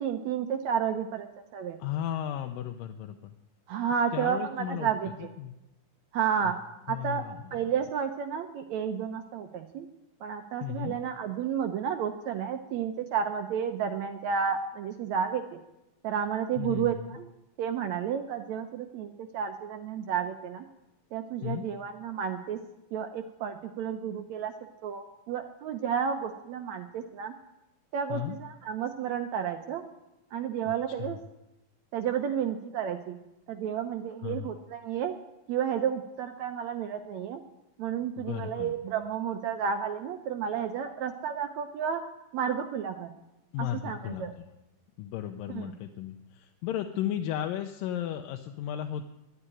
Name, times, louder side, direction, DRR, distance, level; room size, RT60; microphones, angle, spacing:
voice 1, 0.0-1.8 3.7-5.3 6.1-6.6 6.9-7.2 7.5-9.9 10.2-15.6 16.0-17.3 17.6-20.6 21.1-22.6 22.9-24.5 24.8-27.3 27.9-29.8 30.3-31.2 31.9-33.2 33.5-35.1 35.5-37.4 37.8-42.0 42.3-43.1 43.6-44.3 45.5-45.8, right 8 dB, 75° right, 7 dB, 1.8 m, -31 dB
voice 2, 1.8-3.3 4.1-4.9 5.4-5.5 6.4-6.5 6.9-7.6 10.6-11.0 16.6-16.9 21.4-21.7 28.1-28.4 31.0-31.2 34.2-34.5 38.2-38.7 43.5-44.5 45.0-49.0, left 11 dB, 85° left, 5 dB, 2.4 m, -34 dB
11.0 x 9.4 x 9.8 m, 0.91 s
omnidirectional pair, 3.8 m